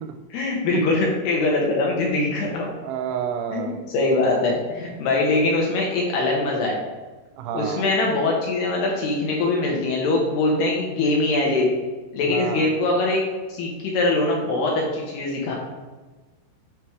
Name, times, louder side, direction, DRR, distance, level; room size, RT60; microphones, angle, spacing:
voice 1, 0.3-2.7 3.5-6.8 7.5-11.7 12.1-13.2 13.5-15.6, left 2 dB, 75° left, -1 dB, 2.5 m, -22 dB
voice 2, 2.8-3.8 7.4-7.9 12.2-12.7, right 8 dB, 85° right, 8 dB, 2.9 m, -29 dB
6.9 x 3.3 x 4.5 m, 1.2 s
omnidirectional pair, 5.3 m